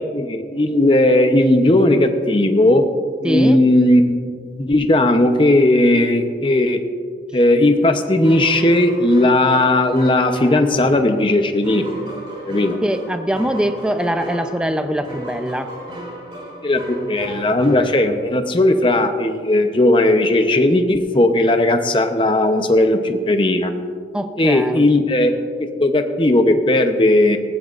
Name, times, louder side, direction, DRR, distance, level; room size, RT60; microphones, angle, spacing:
voice 1, 0.1-2.9 3.2-4.2 4.5-6.8 7.3-11.8 12.5-12.8 16.6-23.7 24.4-25.3 25.8-27.4, left 1 dB, 30° left, 6 dB, 0.8 m, -16 dB
voice 2, 3.2-3.6 12.8-15.7 24.1-24.9, equal, 5° right, 7 dB, 0.6 m, -22 dB
sound 1, 7.8-18.5, right 1 dB, 30° right, 3.5 m, -35 dB
19.0 x 16.0 x 2.6 m, 2.1 s
head